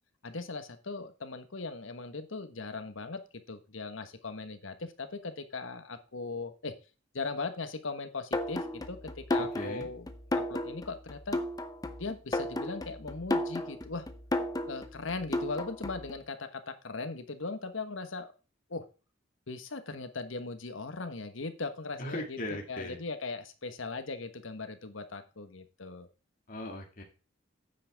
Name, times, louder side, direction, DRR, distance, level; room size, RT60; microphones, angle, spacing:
voice 1, 0.2-6.7 7.1-11.4 12.0-14.1 14.6-18.3 18.7-18.8 19.5-22.4 22.7-26.1, left 3 dB, 80° left, 9 dB, 1.3 m, -39 dB
sound 1, 8.3-16.1, left 1 dB, 20° left, 0.8 m, -34 dB
voice 2, 9.4-9.9 22.0-23.0 26.5-27.0, left 1 dB, 45° left, 1 dB, 1.9 m, -38 dB
9.7 x 7.8 x 3.5 m, 0.33 s
head